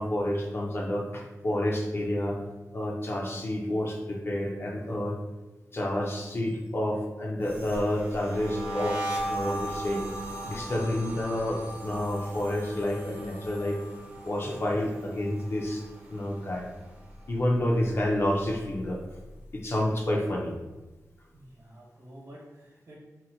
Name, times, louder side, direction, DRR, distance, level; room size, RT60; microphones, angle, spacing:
voice 1, 0.0-2.4 2.7-5.2 5.7-9.0 9.3-10.0 10.4-13.8 14.2-15.8 16.1-16.7 17.3-19.0 19.5-20.5, left 1 dB, 40° left, -1 dB, 0.5 m, -29 dB
sound 1, 7.4-16.6 16.9-17.3 17.6-19.2, right 1 dB, 25° right, 0.6 m, -37 dB
voice 2, 21.3-23.0, right 1 dB, 65° right, -3 dB, 1.1 m, -49 dB
2.9 x 2.1 x 3.9 m, 1.1 s
wide cardioid pair, 115°, 6 cm